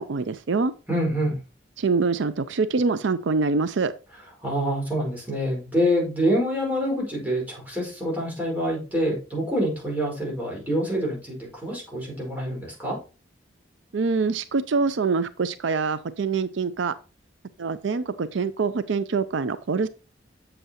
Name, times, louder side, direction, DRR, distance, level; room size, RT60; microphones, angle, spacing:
voice 1, 0.0-0.7 1.8-3.9 13.9-17.0 17.6-19.9, right 4 dB, 80° right, 14 dB, 0.5 m, -25 dB
voice 2, 0.9-1.4 4.4-13.0, equal, 10° right, -3 dB, 4.9 m, -26 dB
7.8 x 7.8 x 3.0 m, 0.33 s
head